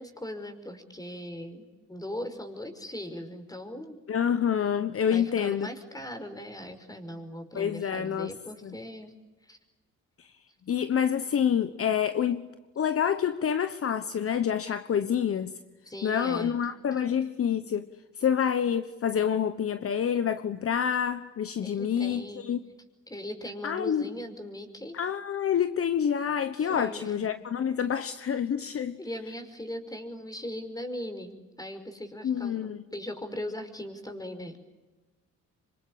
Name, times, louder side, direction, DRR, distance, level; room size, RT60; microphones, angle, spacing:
voice 1, 0.0-4.0 5.1-9.1 9.5-9.6 15.9-16.7 21.6-22.5 23.1-25.0 26.5-27.1 29.0-32.6 32.9-34.7, left 1 dB, 10° left, 5.4 m, -39 dB
voice 2, 4.1-5.7 7.5-8.3 8.6-8.7 10.2-10.3 10.7-12.5 12.8-15.6 16.0-17.9 18.2-22.6 23.6-24.0 24.9-29.0 32.2-32.8, left 8 dB, 50° left, 1.2 m, -27 dB
26.5 x 25.5 x 8.6 m
cardioid pair, 90°, 30 cm